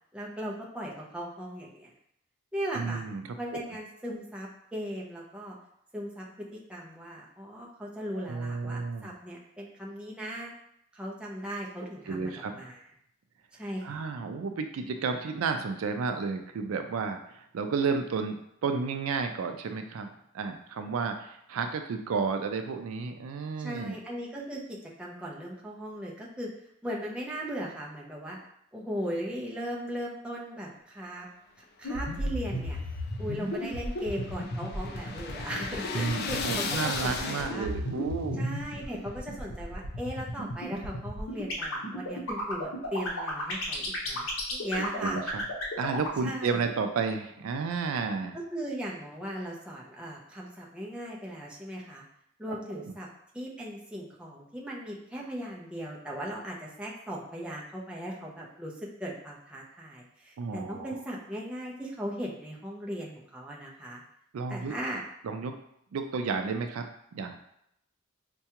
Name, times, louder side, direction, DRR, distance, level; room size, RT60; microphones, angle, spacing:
voice 1, 0.1-1.9 2.5-3.0 3.3-5.6 5.9-10.5 10.9-12.8 13.6-14.0 23.6-26.5 26.8-28.4 28.7-31.3 31.8-32.8 33.2-37.7 38.4-45.2 46.2-46.6 48.3-52.0 52.4-53.1 53.3-64.0 64.5-65.0, equal, 5° right, -4 dB, 0.5 m, -38 dB
voice 2, 2.8-3.2 3.5-3.6 8.1-9.1 12.1-12.6 13.8-18.4 18.6-20.1 20.3-24.0 35.9-38.5 44.7-45.4 45.8-48.4 52.5-52.8 60.4-61.0 64.3-64.7 65.2-65.6 65.9-66.8 67.1-67.4, right 5 dB, 80° right, 6 dB, 0.4 m, -32 dB
sound 1, 31.8-46.2, left 1 dB, 70° left, 0.8 m, -34 dB
sound 2, 32.4-37.9, left 5 dB, 50° left, 0.4 m, -36 dB
4.5 x 2.3 x 2.9 m, 0.74 s
head